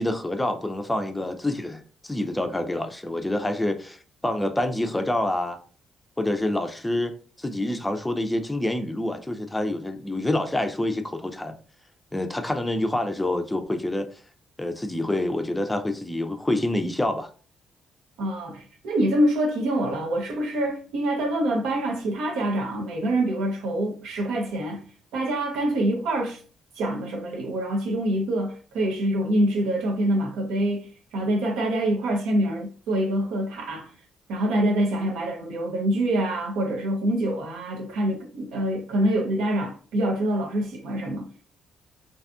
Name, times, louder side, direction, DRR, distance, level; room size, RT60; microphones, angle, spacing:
voice 1, 0.0-5.6 6.2-11.5 12.1-14.1 14.6-17.3, left 1 dB, 10° left, 0.4 m, -27 dB
voice 2, 18.2-24.8 25.1-26.4 26.8-33.9 34.3-41.5, right 1 dB, 90° right, 0.6 m, -25 dB
2.6 x 2.4 x 2.4 m
cardioid pair, 90°, 0 cm